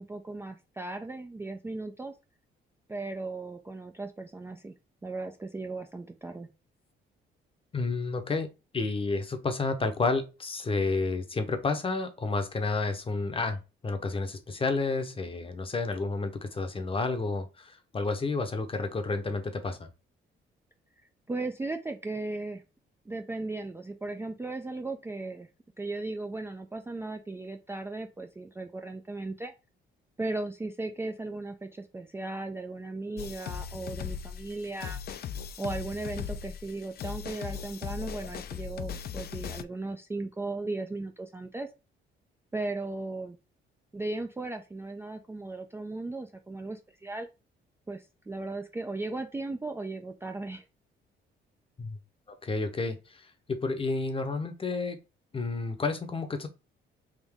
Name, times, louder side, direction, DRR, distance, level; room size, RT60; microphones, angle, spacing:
voice 1, 0.0-2.2 2.9-4.7 5.0-6.5 21.3-22.6 23.1-25.5 25.8-29.5 30.2-35.0 35.6-41.7 42.5-43.4 43.9-47.3 47.9-50.6, right 2 dB, 10° right, 0.4 m, -36 dB
voice 2, 7.7-8.5 8.7-13.6 13.8-19.9 51.8-52.0 52.4-55.0 55.3-56.5, left 3 dB, 25° left, 0.8 m, -30 dB
sound 1, 33.2-39.6, left 8 dB, 50° left, 0.4 m, -38 dB
3.6 x 2.6 x 3.5 m
cardioid pair, 90°, 20 cm